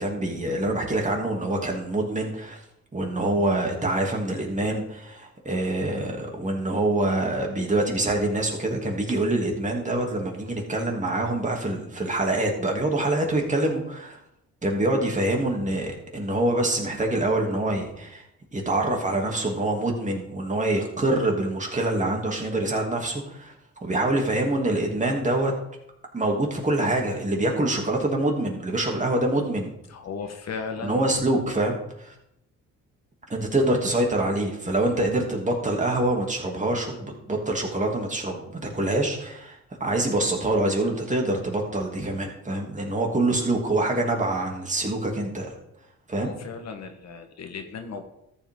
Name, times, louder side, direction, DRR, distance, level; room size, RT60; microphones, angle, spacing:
voice 1, 0.0-2.6 2.9-14.2 14.6-18.2 18.5-23.5 23.8-25.5 26.1-29.7 30.8-32.1 33.3-45.5 46.1-46.3, right 1 dB, 25° right, 0 dB, 2.9 m, -25 dB
voice 2, 29.9-31.0 46.2-48.1, left 5 dB, 60° left, 5 dB, 1.4 m, -36 dB
13.5 x 8.0 x 3.9 m, 0.82 s
cardioid pair, 90°, 30 cm